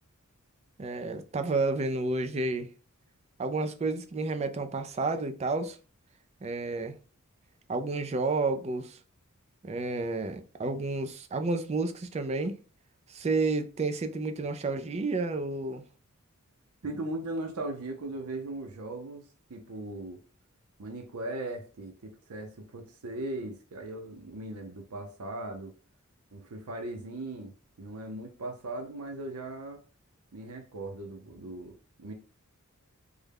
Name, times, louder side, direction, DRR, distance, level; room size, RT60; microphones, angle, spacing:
voice 1, 0.8-2.7 3.4-5.8 6.4-6.9 7.7-9.0 9.6-12.6 13.1-15.8, right 3 dB, 30° right, 0.3 m, -30 dB
voice 2, 16.8-19.2 19.5-20.2 20.8-25.7 26.3-27.5 27.8-29.8 30.3-32.1, right 2 dB, 85° right, 0.6 m, -38 dB
3.4 x 2.1 x 3.4 m
head